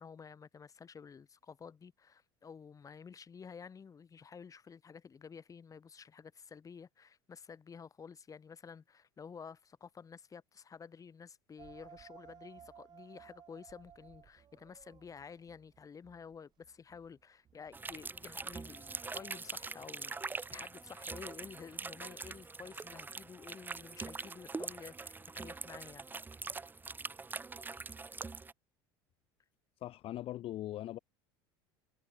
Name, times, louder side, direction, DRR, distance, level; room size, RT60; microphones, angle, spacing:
voice 1, 0.0-26.1, left 6 dB, 30° left, 6.5 m, -51 dB
sound 1, 11.6-19.4, right 9 dB, 40° right, 4.5 m, -58 dB
sound 2, 17.7-28.5, right 4 dB, 15° right, 0.9 m, -43 dB
voice 2, 29.8-31.0, left 14 dB, 55° left, 3.8 m, -40 dB
hypercardioid pair, 85°, 12 cm